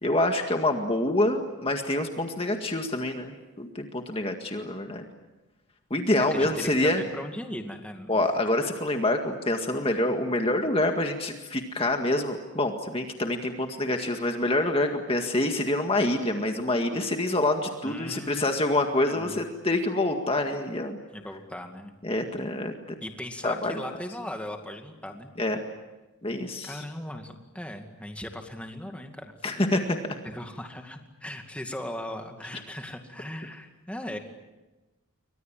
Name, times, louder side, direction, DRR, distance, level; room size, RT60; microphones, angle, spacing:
voice 1, 0.0-5.0 5.9-7.0 8.1-21.0 22.0-22.7 23.4-23.7 25.4-25.6 26.2-26.8 29.4-30.0, left 1 dB, 25° left, 4 dB, 1.9 m, -26 dB
voice 2, 6.2-8.1 17.8-18.6 19.1-19.4 21.1-21.9 23.0-25.3 26.6-29.4 30.2-34.2, left 1 dB, 5° left, 4 dB, 2.2 m, -38 dB
29.5 x 24.5 x 7.6 m, 1.1 s
head